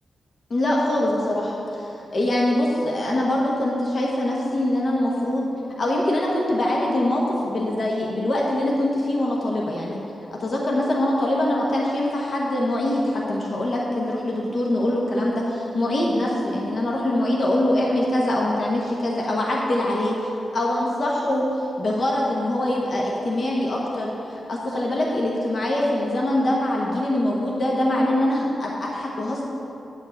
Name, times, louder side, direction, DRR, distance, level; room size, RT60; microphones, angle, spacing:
voice 1, 0.5-5.5 5.8-10.0 10.4-29.4, left 1 dB, 55° left, -3 dB, 1.1 m, -23 dB
9.2 x 4.5 x 7.1 m, 2.9 s
cardioid pair, 85°, 0 cm